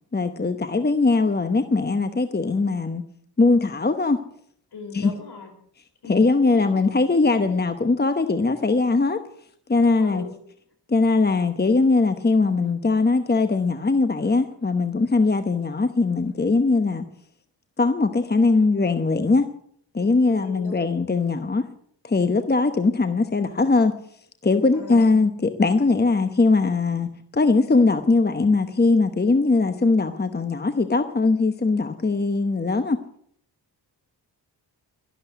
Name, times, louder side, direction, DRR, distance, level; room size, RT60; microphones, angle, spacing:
voice 1, 0.1-3.0 3.4-4.2 4.9-5.1 6.1-9.2 9.7-10.2 10.9-17.0 17.8-19.5 19.9-21.6 22.0-24.0 24.4-33.0, left 3 dB, 25° left, 9 dB, 1.0 m, -20 dB
voice 2, 4.7-5.5 6.0-6.2 6.4-6.8 10.0-10.3 20.2-20.9 24.7-25.2, left 4 dB, 60° left, 5 dB, 5.1 m, -39 dB
12.5 x 12.0 x 8.1 m, 0.65 s
wide cardioid pair, 105°, 43 cm